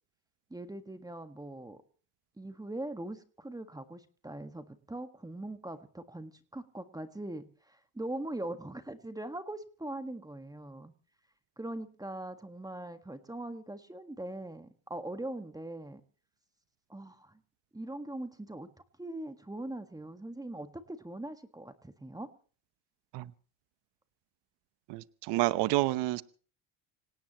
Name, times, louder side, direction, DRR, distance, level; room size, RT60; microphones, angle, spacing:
voice 1, 0.5-1.8 2.4-10.9 11.6-16.0 16.9-17.4 17.7-18.7 19.0-22.3, right 1 dB, 10° right, 9 dB, 1.6 m, -41 dB
voice 2, 24.9-26.2, right 18 dB, 65° right, 16 dB, 1.0 m, -29 dB
26.5 x 17.5 x 3.0 m, 0.40 s
supercardioid pair, 90°, 44 cm